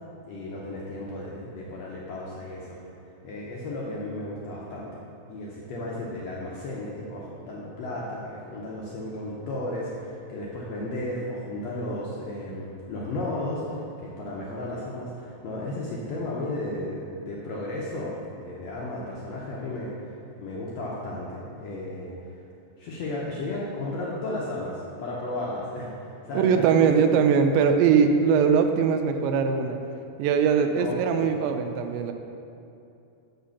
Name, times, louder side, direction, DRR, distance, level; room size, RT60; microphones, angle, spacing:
voice 1, 0.2-2.8 3.2-5.0 5.3-22.3 22.8-27.1 30.7-31.2, left 1 dB, 80° left, -4 dB, 1.5 m, -34 dB
voice 2, 26.4-29.8 30.2-32.1, right 6 dB, 85° right, 6 dB, 2.3 m, -21 dB
6.5 x 5.1 x 6.9 m, 2.6 s
omnidirectional pair, 4.1 m